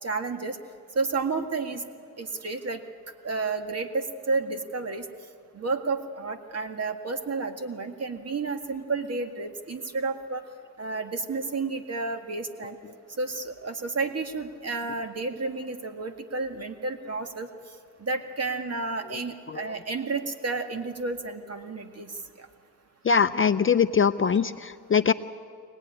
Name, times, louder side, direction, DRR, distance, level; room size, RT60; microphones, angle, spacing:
voice 1, 0.0-0.6 1.0-1.8 2.2-2.8 3.2-5.1 5.5-10.4 10.8-12.8 13.2-17.5 18.0-22.5, right 3 dB, 40° right, 6 dB, 2.0 m, -31 dB
voice 2, 23.0-25.1, left 6 dB, 30° left, 11 dB, 0.6 m, -22 dB
24.0 x 18.5 x 9.8 m, 2.2 s
cardioid pair, 85°, 39 cm